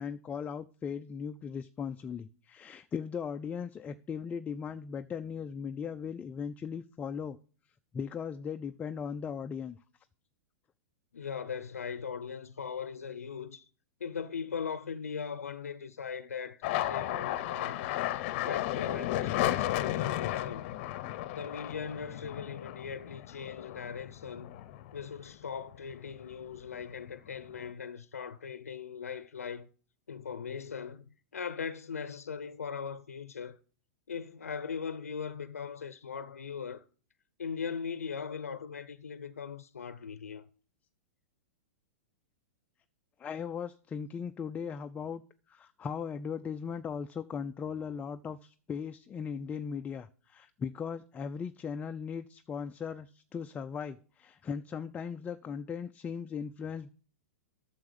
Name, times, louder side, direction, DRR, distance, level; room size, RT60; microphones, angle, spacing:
voice 1, 0.0-7.4 7.9-9.8 43.2-45.2 45.5-56.9, left 6 dB, 20° left, 0.4 m, -38 dB
voice 2, 11.1-13.6 14.0-17.9 18.4-20.8 21.3-24.5 24.9-29.7 30.1-33.6 34.1-36.8 37.4-40.4, left 6 dB, 90° left, 0.6 m, -39 dB
sound 1, 16.6-25.4 25.7-26.5 26.8-27.7, left 14 dB, 50° left, 0.7 m, -34 dB
9.4 x 7.0 x 6.8 m
hypercardioid pair, 115°, 8 cm